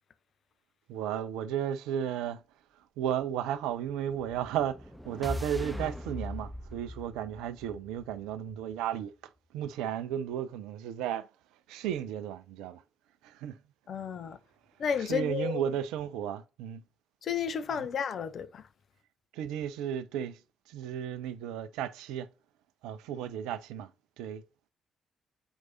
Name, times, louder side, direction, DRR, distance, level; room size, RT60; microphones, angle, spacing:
voice 1, 0.9-2.4 3.0-9.1 9.5-11.3 11.7-12.8 13.2-13.6 15.0-16.8 17.8-17.9 19.3-20.4 20.7-22.3 22.8-23.9 24.2-24.4, right 10 dB, 70° right, 0.5 m, -34 dB
sound 1, 4.1-8.3, left 1 dB, ahead, 1.3 m, -40 dB
voice 2, 13.9-14.4 14.8-15.6 17.2-18.6, left 7 dB, 50° left, 0.6 m, -32 dB
8.0 x 4.6 x 2.7 m
figure-of-eight pair, 40°, 0 cm